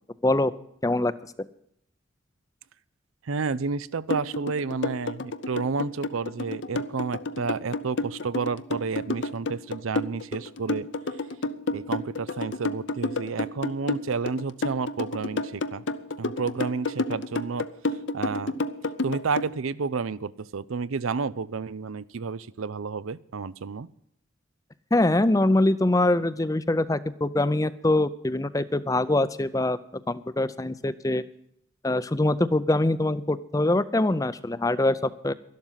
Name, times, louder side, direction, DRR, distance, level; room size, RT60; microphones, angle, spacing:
voice 1, 3.2-10.9 11.7-15.8 16.2-17.7 18.1-18.5 19.0-23.9, right 4 dB, 90° right, 18 dB, 0.6 m, -30 dB
sound 1, 4.1-19.5, left 3 dB, 65° left, 0.7 m, -29 dB
voice 2, 24.9-29.8 30.1-31.2 31.8-35.3, left 2 dB, 15° left, 15 dB, 0.5 m, -23 dB
12.5 x 12.0 x 5.7 m, 0.71 s
head